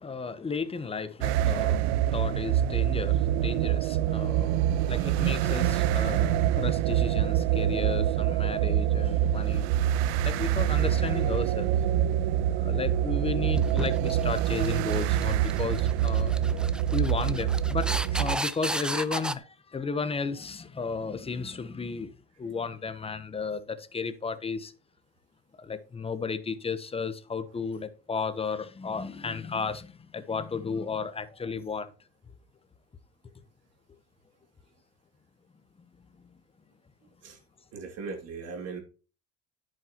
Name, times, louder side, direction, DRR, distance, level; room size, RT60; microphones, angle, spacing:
voice 1, 0.0-9.7 10.2-11.7 12.6-16.4 16.9-22.1 22.4-24.7 25.6-31.9, left 5 dB, 20° left, 1.0 m, -34 dB
sound 1, 1.2-18.4, right 11 dB, 90° right, 0.5 m, -26 dB
sound 2, 13.5-19.4, right 1 dB, 5° right, 0.3 m, -34 dB
voice 2, 37.7-38.8, right 4 dB, 50° right, 2.7 m, -38 dB
10.5 x 6.6 x 3.0 m
supercardioid pair, 100°, 31 cm